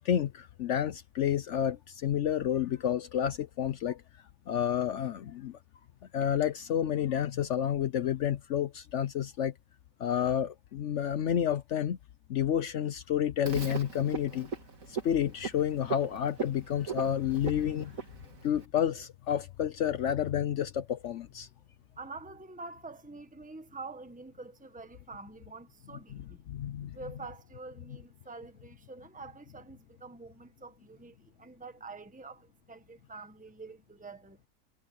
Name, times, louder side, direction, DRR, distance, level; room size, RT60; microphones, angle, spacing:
voice 1, 0.0-4.0 4.5-5.6 6.1-9.5 10.0-12.0 12.3-14.5 14.9-18.0 18.4-21.5 26.5-27.0, left 9 dB, 65° left, 0.9 m, -30 dB
Frog, 13.5-18.7, right 5 dB, 70° right, 2.8 m, -40 dB
voice 2, 22.0-26.4 26.9-34.4, right 3 dB, 5° right, 1.3 m, -46 dB
omnidirectional pair, 1.5 m